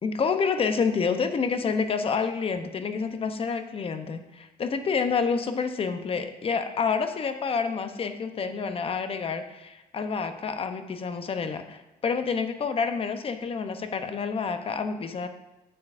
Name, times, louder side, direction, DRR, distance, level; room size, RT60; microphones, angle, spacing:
voice 1, 0.0-15.3, left 5 dB, 35° left, 8 dB, 0.7 m, -28 dB
9.5 x 7.0 x 2.5 m, 0.99 s
cardioid pair, 110°, 17 cm